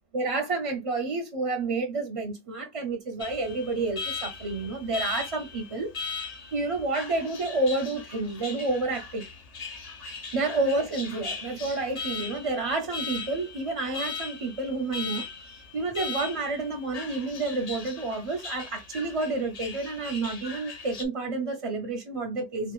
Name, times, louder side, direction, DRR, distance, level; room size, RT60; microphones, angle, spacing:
voice 1, 0.1-5.9 6.3-9.3 10.3-22.7, right 3 dB, 40° right, 0.5 m, -30 dB
Alarm, 3.2-21.0, left 5 dB, 45° left, 0.7 m, -39 dB
4.0 x 2.4 x 2.3 m
omnidirectional pair, 1.1 m